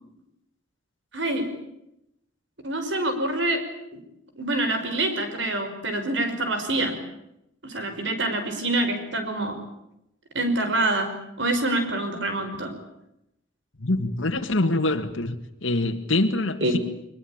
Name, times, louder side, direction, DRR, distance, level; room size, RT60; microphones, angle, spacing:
voice 1, 1.1-1.5 2.6-3.6 3.9-4.0 4.4-7.0 7.6-9.6 10.3-11.1 11.4-12.7 16.6-16.7, right 2 dB, 65° right, 7 dB, 5.6 m, -26 dB
voice 2, 13.8-15.4 15.6-16.8, left 2 dB, 75° left, 4 dB, 1.9 m, -24 dB
23.0 x 21.5 x 8.8 m, 0.82 s
head